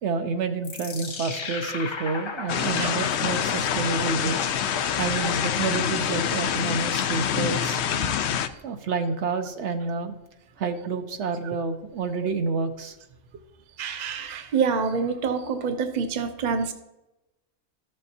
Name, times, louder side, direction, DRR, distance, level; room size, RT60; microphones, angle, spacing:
voice 1, 0.0-4.4 5.0-7.8 8.6-10.2 10.6-12.9, right 4 dB, 70° right, 6 dB, 1.0 m, -29 dB
sound 1, 0.6-5.9, left 4 dB, 45° left, 0.3 m, -36 dB
sound 2, 2.5-8.5, left 9 dB, 70° left, 0.8 m, -26 dB
voice 2, 13.8-16.7, right 5 dB, 40° right, 7 dB, 0.8 m, -26 dB
13.5 x 6.7 x 2.8 m, 0.96 s
omnidirectional pair, 1.3 m